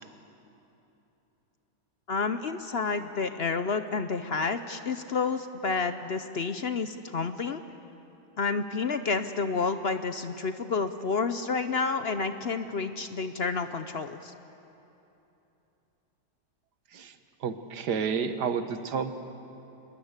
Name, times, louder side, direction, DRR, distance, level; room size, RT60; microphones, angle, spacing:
voice 1, 2.1-7.6 8.4-14.3, left 4 dB, 50° left, 10 dB, 0.8 m, -30 dB
voice 2, 17.4-19.1, right 6 dB, 90° right, 9 dB, 1.8 m, -30 dB
27.5 x 20.5 x 8.1 m, 3.0 s
omnidirectional pair, 1.7 m